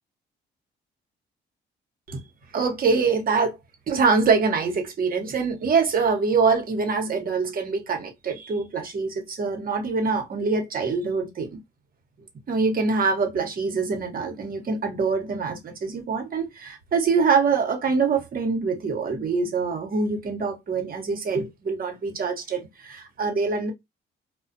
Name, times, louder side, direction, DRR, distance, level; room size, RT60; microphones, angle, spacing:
voice 1, 2.5-3.6 3.9-11.5 12.5-23.7, right 4 dB, 45° right, 1.0 m, -24 dB
2.3 x 2.1 x 2.5 m
cardioid pair, 90°, 20 cm